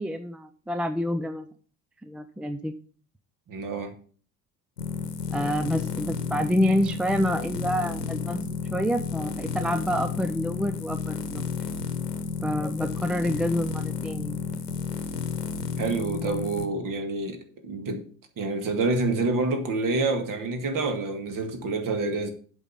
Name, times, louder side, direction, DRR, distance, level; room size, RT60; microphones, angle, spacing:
voice 1, 0.0-1.5 2.0-2.7 5.3-8.4 8.7-11.5 12.4-14.4, equal, ahead, 0.4 m, -28 dB
voice 2, 3.5-4.0 15.8-18.1 18.4-22.3, right 3 dB, 40° right, 2.0 m, -27 dB
sound 1, 4.8-16.7, left 5 dB, 80° left, 1.1 m, -32 dB
7.9 x 5.5 x 7.2 m
figure-of-eight pair, 60°, 47 cm